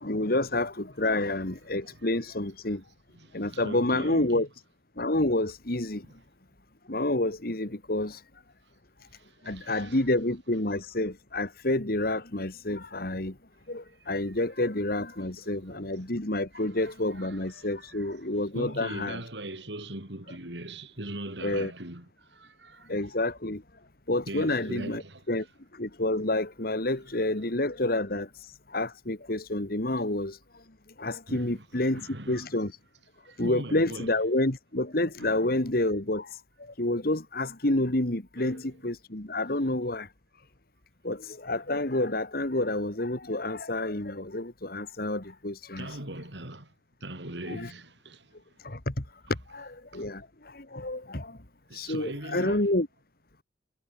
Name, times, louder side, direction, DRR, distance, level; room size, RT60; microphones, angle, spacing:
voice 1, 0.0-2.8 3.3-4.5 5.0-6.0 6.9-8.2 9.5-13.3 13.7-19.2 21.4-21.7 22.9-23.6 24.1-25.0 25.3-25.4 25.8-28.3 28.7-30.4 31.0-32.0 32.3-32.7 33.4-36.3 36.8-40.1 41.0-45.9 47.5-47.7 48.6-48.9 49.5-50.3 50.5-51.4 51.7-52.9, left 1 dB, 55° left, 2.3 m, -29 dB
voice 2, 3.1-4.5 9.1-10.0 15.4-16.0 16.5-18.1 18.5-22.9 24.3-25.2 31.3-32.5 33.2-34.1 35.2-35.5 38.4-38.7 45.7-46.7 47.0-48.4 49.9-50.1 51.7-52.6, right 1 dB, 75° right, 6.7 m, -41 dB
head